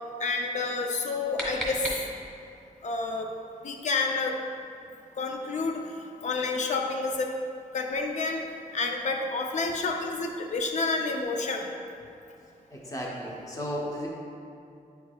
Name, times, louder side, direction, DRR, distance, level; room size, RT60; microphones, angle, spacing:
voice 1, 0.2-1.9 2.8-3.3 3.6-4.4 5.2-7.3 7.7-8.4 8.7-11.7, left 3 dB, 55° left, 3 dB, 0.5 m, -29 dB
sound 1, 0.9-2.5, equal, 5° left, 1.1 m, -36 dB
voice 2, 12.7-14.1, equal, 25° left, -4 dB, 0.8 m, -34 dB
8.9 x 4.6 x 2.3 m, 2.5 s
wide cardioid pair, 150°, 15 cm